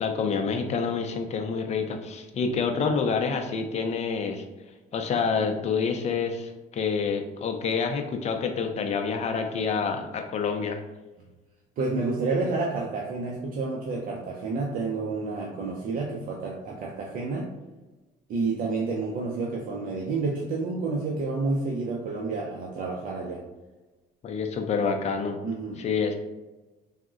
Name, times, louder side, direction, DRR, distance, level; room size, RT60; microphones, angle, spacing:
voice 1, 0.0-4.4 4.9-10.8 24.2-25.4 25.8-26.1, left 5 dB, 40° left, 5 dB, 0.4 m, -27 dB
voice 2, 11.8-17.5 18.3-23.4 25.4-25.8, right 3 dB, 55° right, -1 dB, 0.4 m, -29 dB
3.5 x 2.0 x 2.5 m, 1.1 s
cardioid pair, 110°, 17 cm